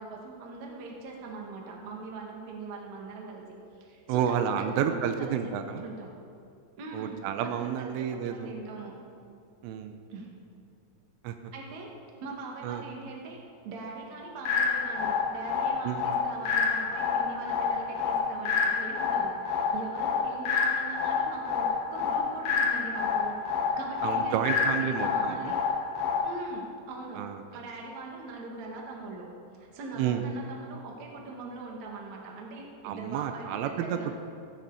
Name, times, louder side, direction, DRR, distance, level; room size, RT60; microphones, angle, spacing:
voice 1, 0.0-3.4 3.8-6.1 6.8-7.1 7.4-9.0 10.1-10.3 11.5-11.9 12.2-13.4 13.6-25.6 26.2-27.3 27.5-29.3 29.6-34.1, right 3 dB, 50° right, -1 dB, 2.5 m, -41 dB
voice 2, 4.1-5.9 6.9-8.5 9.6-10.0 11.2-11.5 12.6-12.8 15.8-16.1 24.0-25.5 27.2-27.4 29.9-30.2 32.8-34.2, right 8 dB, 90° right, 7 dB, 3.2 m, -30 dB
sound 1, 14.4-26.4, left 5 dB, 85° left, 2.0 m, -28 dB
16.0 x 15.0 x 4.2 m, 2.5 s
omnidirectional pair, 5.8 m